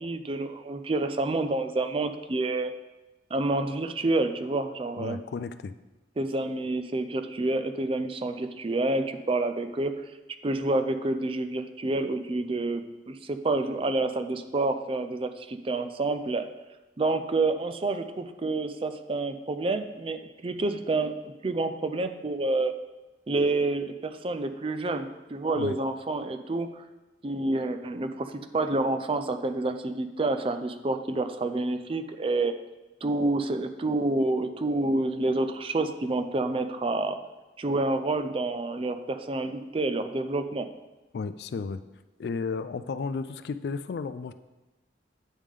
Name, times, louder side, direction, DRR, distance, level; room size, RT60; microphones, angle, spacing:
voice 1, 0.0-2.7 3.3-5.2 6.2-9.9 10.4-16.5 17.0-22.7 23.3-26.8 27.2-32.5 33.0-37.2 37.6-40.7, right 2 dB, 30° right, 9 dB, 0.4 m, -28 dB
voice 2, 5.0-5.7 25.5-25.8 41.1-41.8 42.2-44.3, left 4 dB, 60° left, 13 dB, 0.3 m, -33 dB
9.0 x 3.6 x 4.9 m, 1.1 s
head